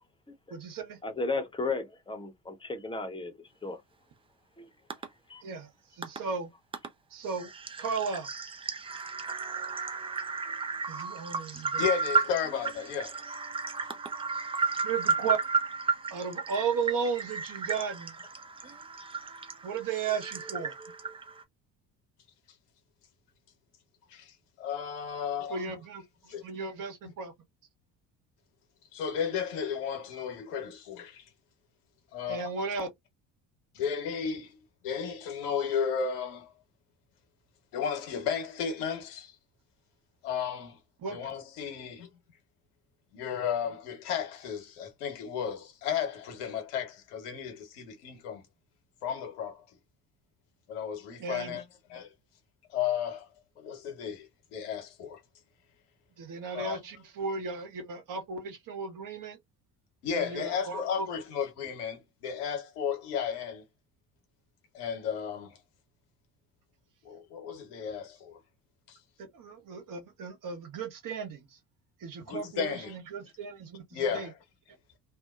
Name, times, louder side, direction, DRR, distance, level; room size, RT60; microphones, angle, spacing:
voice 1, 0.5-1.0 5.4-5.7 6.0-6.5 7.1-7.5 7.8-8.3 10.9-11.8 14.8-15.4 16.1-18.1 19.6-20.8 25.5-27.3 32.3-32.9 41.0-41.2 51.2-51.6 56.2-59.4 60.1-61.1 69.3-71.6 72.0-74.3, right 5 dB, 45° right, 1.1 m, -35 dB
voice 2, 1.0-3.8 4.6-4.7 5.3-5.4, left 3 dB, 10° left, 0.8 m, -34 dB
sound 1, 4.9-5.1 6.0-6.2 6.7-6.9 7.2-21.4, right 4 dB, 15° right, 0.4 m, -33 dB
voice 3, 11.5-13.2 24.1-25.6 26.3-26.4 28.9-31.2 32.1-32.5 33.7-36.5 37.7-39.3 40.2-40.8 41.1-42.1 43.1-48.4 49.0-49.6 50.7-51.6 51.9-52.1 52.7-53.3 53.6-55.2 56.5-56.8 60.0-63.6 64.7-65.6 67.0-68.4 68.9-69.0 72.3-72.9 73.9-74.3, left 7 dB, 70° left, 1.1 m, -34 dB
2.7 x 2.2 x 2.4 m
hypercardioid pair, 55°, 47 cm